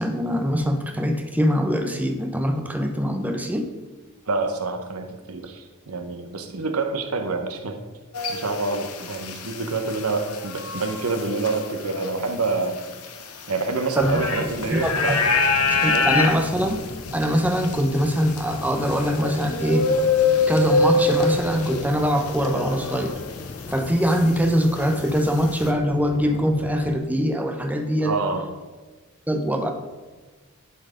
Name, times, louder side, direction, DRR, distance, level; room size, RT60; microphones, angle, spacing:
voice 1, 0.0-3.7 14.0-14.2 14.7-15.2 15.7-16.8 17.1-19.9 20.5-23.2 23.7-28.1 29.3-29.7, equal, 5° right, 4 dB, 0.8 m, -23 dB
voice 2, 4.3-7.8 8.3-12.8 13.5-15.2 15.9-16.1 28.0-28.5, right 3 dB, 75° right, 6 dB, 1.0 m, -27 dB
sound 1, 8.1-23.4 23.7-25.7, left 3 dB, 75° left, 1.0 m, -26 dB
sound 2, 14.0-27.0, left 3 dB, 30° left, 0.3 m, -38 dB
11.0 x 4.6 x 5.0 m, 1.3 s
head